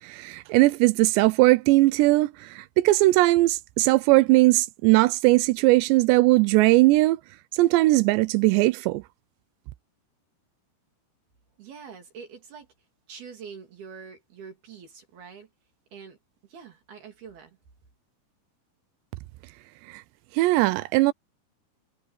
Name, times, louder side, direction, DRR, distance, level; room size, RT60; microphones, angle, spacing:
voice 1, 0.0-7.2 7.5-9.0 20.4-21.1, right 20 dB, 85° right, 2.9 m, -19 dB
voice 2, 11.6-12.7 13.1-15.5 15.9-16.2 16.5-17.6, right 6 dB, 65° right, 4.7 m, -44 dB
omnidirectional pair, 5.0 m